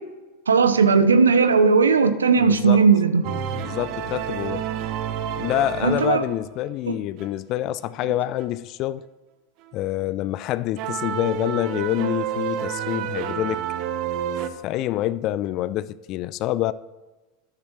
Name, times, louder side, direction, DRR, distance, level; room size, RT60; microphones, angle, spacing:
voice 1, 0.5-3.2 5.8-6.2 6.9-7.0, right 5 dB, 85° right, 0.6 m, -17 dB
voice 2, 2.4-2.8 3.5-4.7 5.3-9.0 9.7-13.6 14.6-16.7, left 14 dB, 50° left, 0.3 m, -26 dB
sound 1, 3.2-6.6 7.2-7.3 8.4-8.5 10.8-14.5, right 9 dB, 55° right, 0.8 m, -29 dB
12.5 x 10.0 x 3.1 m
hypercardioid pair, 90°, 0 cm